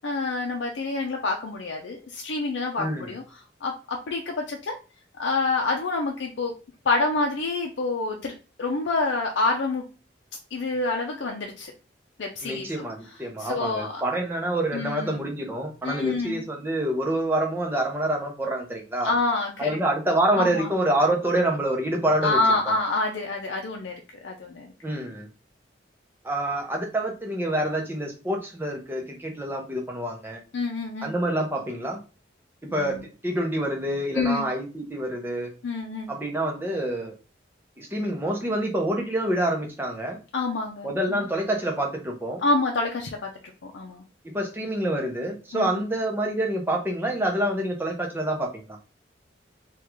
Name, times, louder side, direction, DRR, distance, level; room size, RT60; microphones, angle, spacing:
voice 1, 0.0-3.2 3.6-4.8 5.2-6.5 6.9-9.9 10.5-11.7 12.2-12.7 13.4-14.0 14.7-15.2 15.8-16.4 19.0-19.7 20.4-20.7 22.2-23.9 24.2-24.7 30.5-31.1 32.7-33.0 34.1-34.5 35.6-36.1 40.3-41.2 42.4-43.3 43.6-44.0 45.5-45.7, left 3 dB, 75° left, 1 dB, 0.5 m, -27 dB
voice 2, 2.8-3.1 12.4-19.1 19.6-22.4 24.8-25.3 26.2-30.4 31.0-32.0 32.7-33.0 33.2-35.5 36.1-37.1 37.8-40.2 40.8-42.4 44.2-48.8, right 1 dB, 10° right, 1 dB, 0.7 m, -27 dB
3.6 x 2.4 x 3.0 m, 0.33 s
head